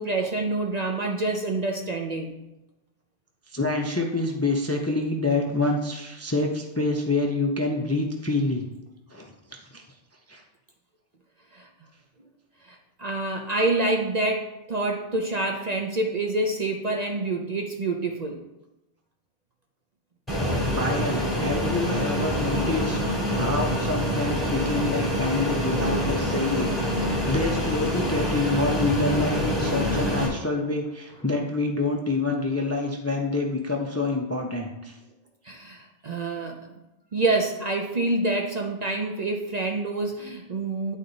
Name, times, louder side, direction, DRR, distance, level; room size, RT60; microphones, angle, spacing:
voice 1, 0.0-2.4 11.5-11.7 12.6-18.4 35.4-36.7 37.1-41.0, right 2 dB, 45° right, 2 dB, 0.6 m, -27 dB
voice 2, 3.5-8.7 9.1-9.3 9.7-9.8 10.3-10.4 20.7-23.0 23.4-35.0, left 2 dB, 20° left, 2 dB, 0.5 m, -27 dB
Fixed-wing aircraft airplane, 20.3-30.3, equal, ahead, 2.6 m, -26 dB
10.0 x 4.1 x 3.9 m, 0.96 s
omnidirectional pair, 1.2 m